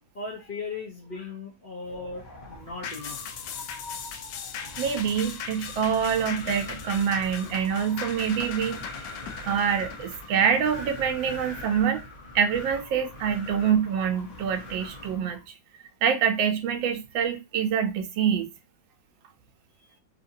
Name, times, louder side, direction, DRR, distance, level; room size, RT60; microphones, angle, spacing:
voice 1, 0.1-3.3, left 4 dB, 50° left, 0.6 m, -38 dB
Wind, 1.8-15.5, left 1 dB, 30° left, 1.0 m, -42 dB
sound 1, 2.8-11.5 12.0-12.1, left 7 dB, 75° left, 1.2 m, -39 dB
voice 2, 4.8-9.1 9.5-12.0 12.3-15.4 16.0-18.5, right 7 dB, 85° right, 1.4 m, -26 dB
3.5 x 2.8 x 2.6 m
omnidirectional pair, 2.1 m